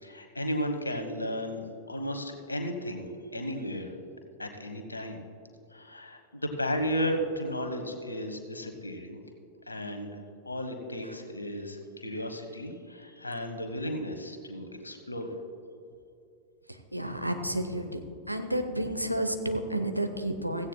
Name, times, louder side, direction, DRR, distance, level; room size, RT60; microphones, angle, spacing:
voice 1, 0.0-3.9 4.4-5.2 5.7-9.2 9.7-15.3, equal, 80° left, 6 dB, 1.2 m, -34 dB
voice 2, 16.7-18.0 18.3-20.7, right 1 dB, 90° right, 6 dB, 0.9 m, -31 dB
16.0 x 15.5 x 2.3 m, 2.6 s
figure-of-eight pair, 90°, 0 cm